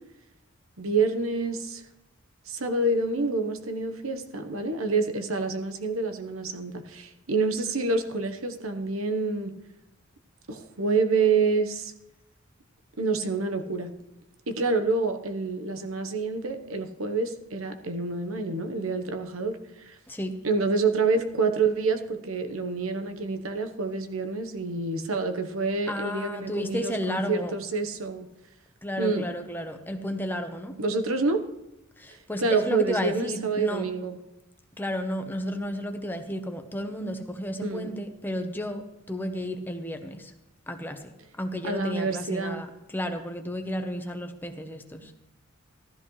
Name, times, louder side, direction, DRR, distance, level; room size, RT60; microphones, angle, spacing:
voice 1, 0.8-1.8 2.5-9.6 10.5-11.9 13.0-13.9 14.5-20.0 20.4-28.3 29.0-29.3 30.8-31.4 32.4-34.2 37.6-37.9 41.6-42.6, right 3 dB, 80° right, 7 dB, 1.1 m, -27 dB
voice 2, 25.9-27.5 28.8-30.7 32.0-33.9 34.8-40.3 40.7-45.1, equal, 10° left, 6 dB, 1.0 m, -32 dB
15.0 x 13.0 x 3.2 m, 0.92 s
head